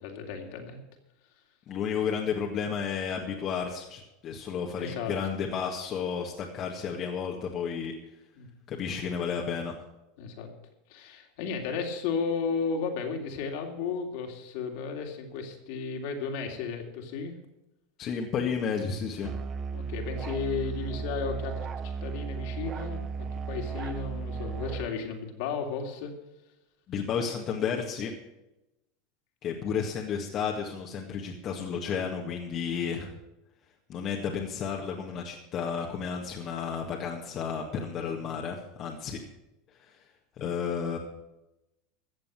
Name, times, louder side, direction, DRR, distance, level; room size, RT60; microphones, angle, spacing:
voice 1, 0.0-0.8 4.8-5.1 8.4-8.5 10.2-10.5 10.9-17.3 19.7-26.1 29.7-29.8, left 5 dB, 65° left, 2 dB, 3.0 m, -34 dB
voice 2, 1.7-7.9 8.7-9.8 18.0-19.3 26.9-28.1 29.4-33.1 33.9-39.2 39.8-39.9 40.4-41.0, left 6 dB, 45° left, 0 dB, 2.0 m, -32 dB
Musical instrument, 19.2-24.9, right 5 dB, 35° right, 0.7 m, -35 dB
14.5 x 7.6 x 7.6 m, 0.94 s
hypercardioid pair, 95°, 0 cm